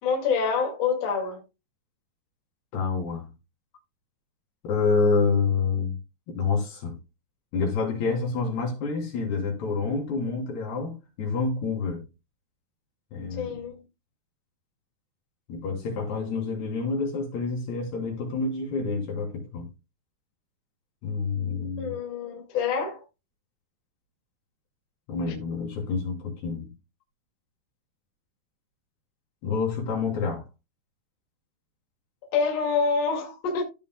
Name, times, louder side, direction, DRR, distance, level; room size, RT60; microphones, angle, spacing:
voice 1, 0.0-1.4 13.4-13.7 21.8-23.0 32.3-33.6, left 5 dB, 45° left, 2.8 m, -26 dB
voice 2, 2.7-3.2 4.6-6.0 6.3-6.9 7.5-12.0 13.1-13.5 15.5-19.7 21.0-21.9 25.1-26.7 29.4-30.4, left 4 dB, 65° left, 5.1 m, -28 dB
16.0 x 5.4 x 2.2 m
omnidirectional pair, 5.0 m